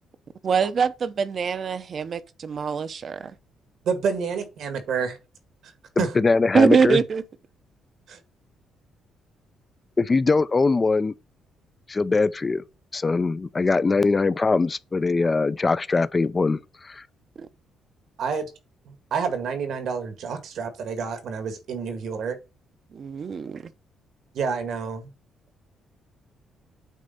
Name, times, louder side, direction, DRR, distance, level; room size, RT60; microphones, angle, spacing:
voice 1, 0.4-3.3 6.5-7.2 17.4-17.5 22.9-23.6, right 6 dB, 50° right, 0.8 m, -23 dB
voice 2, 3.8-5.2 5.6-5.7 6.0-6.1 8.1-8.2 18.2-18.4 19.1-22.4 24.3-25.1, right 6 dB, 70° right, 1.7 m, -28 dB
voice 3, 6.0-7.0 10.0-11.1 11.9-12.6 12.9-16.6 16.8-17.0, left 3 dB, 30° left, 0.5 m, -22 dB
8.4 x 3.3 x 5.3 m
cardioid pair, 90°, 0 cm